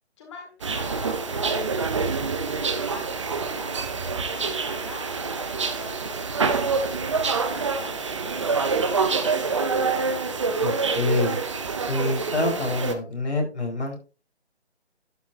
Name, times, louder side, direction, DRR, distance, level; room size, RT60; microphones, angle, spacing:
voice 1, 0.2-4.0 4.3-9.7, left 4 dB, 25° left, 1 dB, 1.7 m, -44 dB
sound 1, 0.6-12.9, right 4 dB, 25° right, 0.8 m, -26 dB
voice 2, 10.6-11.4 11.9-14.0, left 2 dB, 75° left, 1 dB, 4.4 m, -26 dB
11.5 x 8.3 x 2.6 m, 0.33 s
figure-of-eight pair, 155°, 34 cm